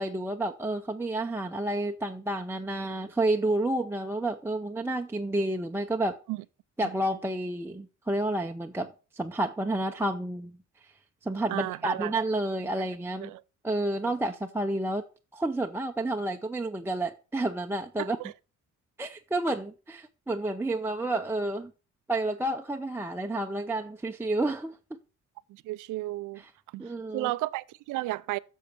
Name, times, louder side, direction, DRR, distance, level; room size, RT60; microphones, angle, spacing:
voice 1, 0.0-6.2 6.8-10.5 11.2-13.3 13.6-15.0 15.3-18.2 19.0-21.7 22.1-24.8 26.4-26.5 26.8-27.3, right 1 dB, 10° right, 0.5 m, -30 dB
voice 2, 11.5-12.1 13.2-13.4 14.0-14.1 18.0-18.3 25.5-26.4 26.7-28.4, right 18 dB, 85° right, 0.5 m, -33 dB
10.5 x 6.4 x 4.4 m
cardioid pair, 90°, 30 cm